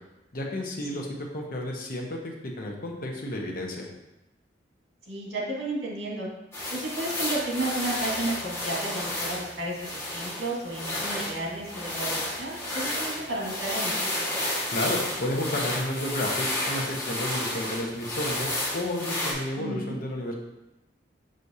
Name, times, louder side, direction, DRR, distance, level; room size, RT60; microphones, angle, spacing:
voice 1, 0.3-3.9 14.7-20.3, left 1 dB, 50° left, 0 dB, 1.1 m, -32 dB
voice 2, 5.1-6.3 6.7-14.3 19.6-20.0, right 1 dB, 85° right, -4 dB, 2.0 m, -33 dB
sound 1, 6.5-19.3, left 1 dB, 15° left, 1.7 m, -31 dB
6.4 x 6.2 x 2.8 m, 0.96 s
head